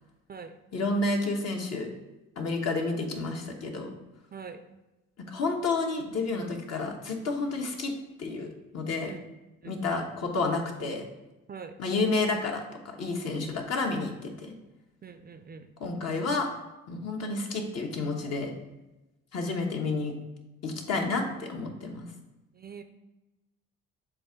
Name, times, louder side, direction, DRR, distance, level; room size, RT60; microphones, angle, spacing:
voice 1, 0.7-1.9 2.4-3.9 5.2-7.9 8.2-8.5 8.7-9.1 9.6-11.0 11.8-14.5 15.8-16.5 16.9-18.5 19.3-20.1 20.6-22.1, left 3 dB, 55° left, 1 dB, 1.2 m, -30 dB
voice 2, 9.6-10.0 11.5-11.8 15.0-15.7 22.5-22.8, right 6 dB, 30° right, 9 dB, 0.4 m, -43 dB
7.6 x 2.5 x 5.7 m, 1.0 s
cardioid pair, 90°, 30 cm